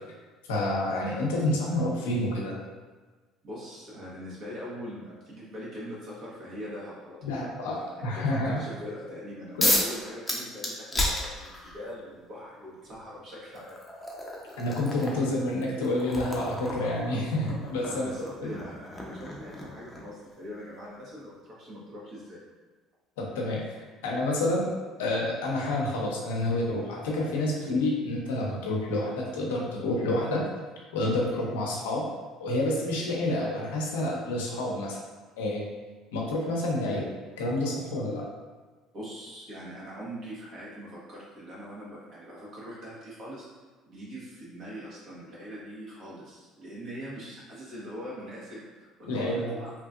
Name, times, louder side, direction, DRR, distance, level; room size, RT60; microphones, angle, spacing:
voice 1, 0.5-2.6 7.2-8.6 9.6-9.7 14.6-18.1 18.4-18.5 23.2-24.7 25.0-30.4 30.9-32.0 32.4-35.0 35.4-35.7 36.1-37.1 37.4-38.2 49.0-49.6, left 1 dB, 90° left, -2 dB, 0.6 m, -28 dB
voice 2, 3.4-13.8 17.8-22.4 38.9-43.4 43.9-49.7, equal, 55° right, -6 dB, 1.2 m, -42 dB
sound 1, 9.6-9.9 10.3-11.8 12.9-13.0 13.6-20.2, left 1 dB, 15° left, 0.6 m, -32 dB
2.8 x 2.6 x 2.4 m, 1.3 s
supercardioid pair, 75°, 0 cm